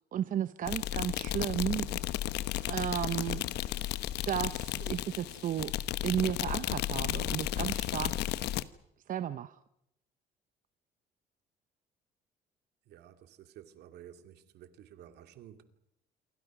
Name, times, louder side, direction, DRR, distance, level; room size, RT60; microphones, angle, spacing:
voice 1, 0.1-2.0 2.6-5.7 6.0-8.3 9.1-9.6, right 10 dB, 50° right, 0.9 m, -34 dB
sound 1, 0.7-8.6, left 14 dB, 80° left, 1.1 m, -34 dB
voice 2, 12.8-15.6, right 10 dB, 75° right, 2.5 m, -53 dB
28.0 x 24.0 x 6.2 m
cardioid pair, 110°, 17 cm